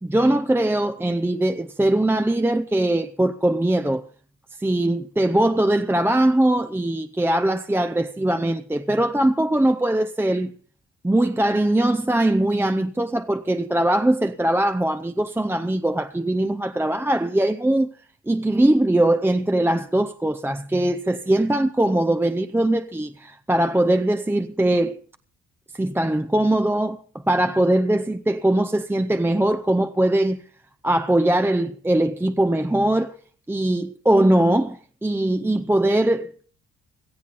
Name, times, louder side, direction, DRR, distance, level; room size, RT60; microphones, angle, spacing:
voice 1, 0.0-4.1 4.6-10.5 11.0-17.9 18.3-25.0 25.7-27.0 27.3-30.4 30.8-33.1 33.5-36.5, right 1 dB, 5° right, 0.6 m, -21 dB
17.5 x 13.5 x 4.0 m
cardioid pair, 90°, 30 cm